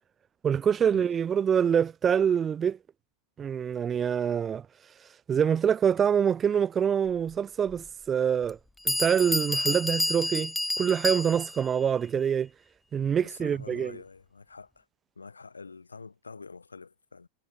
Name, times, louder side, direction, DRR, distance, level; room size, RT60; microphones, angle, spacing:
voice 1, 0.4-2.8 3.4-4.7 5.3-8.6 8.8-12.5 12.9-13.9, right 8 dB, 20° right, 0.6 m, -25 dB
Bell, 7.7-7.8 8.5-8.6 8.9-11.7, left 2 dB, 5° left, 1.2 m, -29 dB
voice 2, 13.2-14.9 15.2-17.3, left 4 dB, 75° left, 2.8 m, -46 dB
figure-of-eight pair, 90°, 0 cm